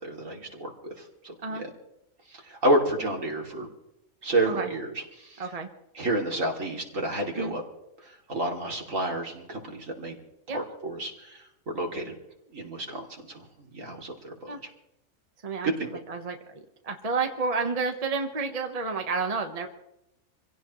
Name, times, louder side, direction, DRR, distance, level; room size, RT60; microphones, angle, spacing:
voice 1, 0.0-0.7 1.0-1.7 2.3-3.7 4.2-5.5 5.9-7.6 8.0-10.2 10.5-11.4 11.7-12.1 12.5-14.3 15.6-15.9, right 1 dB, 65° right, 0 dB, 3.2 m, -30 dB
voice 2, 5.4-5.7 7.3-7.5 10.5-10.6 14.5-14.6 15.4-15.7 16.1-19.7, right 4 dB, 30° right, 5 dB, 1.2 m, -30 dB
26.5 x 16.5 x 3.1 m, 0.85 s
omnidirectional pair, 1.4 m